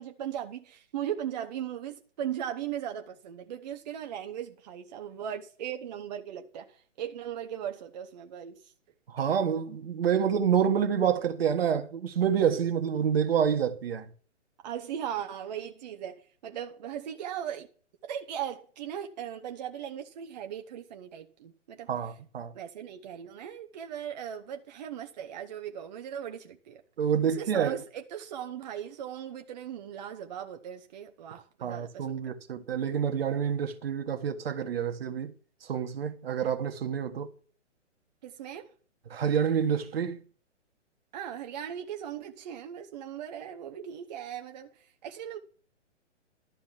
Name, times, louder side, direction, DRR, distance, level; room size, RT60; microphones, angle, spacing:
voice 1, 0.0-8.7 14.6-17.7 18.1-21.9 22.5-26.8 27.2-32.2 38.2-38.7 41.1-44.7 45.0-45.4, right 9 dB, 35° right, 0.9 m, -38 dB
voice 2, 9.1-14.0 21.9-22.5 27.0-27.8 31.3-35.3 35.7-37.3 39.1-40.2, right 8 dB, 50° right, 1.5 m, -28 dB
12.0 x 5.1 x 7.4 m
figure-of-eight pair, 130°, 37 cm